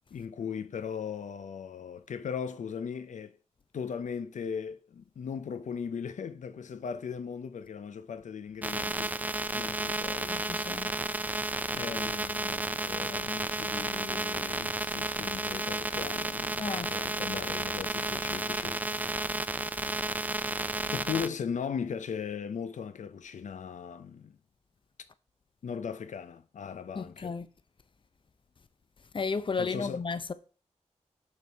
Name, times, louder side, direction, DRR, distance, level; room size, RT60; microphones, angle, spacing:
voice 1, 0.1-3.4 3.7-9.2 9.5-10.4 11.7-18.8 20.9-24.4 25.6-27.4 29.6-30.0, left 7 dB, 85° left, 0.5 m, -38 dB
sound 1, 8.6-21.3, right 2 dB, 15° right, 0.4 m, -32 dB
voice 2, 10.2-10.9 16.6-16.9 27.0-27.5 29.1-30.3, left 4 dB, 45° left, 0.6 m, -33 dB
6.7 x 6.7 x 3.4 m
wide cardioid pair, 95°, 12 cm